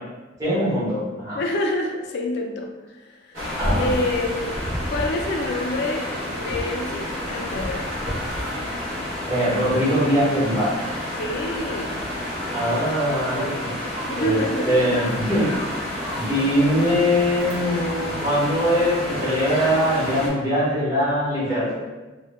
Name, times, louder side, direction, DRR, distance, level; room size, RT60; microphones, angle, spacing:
voice 1, 0.4-1.4 3.6-3.9 9.3-10.8 12.5-14.4 14.6-15.5 16.1-21.8, equal, 20° right, -10 dB, 0.9 m, -22 dB
voice 2, 1.3-2.7 3.0-3.4 3.7-4.6 4.9-7.9 11.2-12.0 14.1-14.9, left 1 dB, 60° left, 3 dB, 0.3 m, -27 dB
sound 1, 3.3-20.3, left 1 dB, 75° right, 0.7 m, -29 dB
2.1 x 2.1 x 2.9 m, 1.1 s
head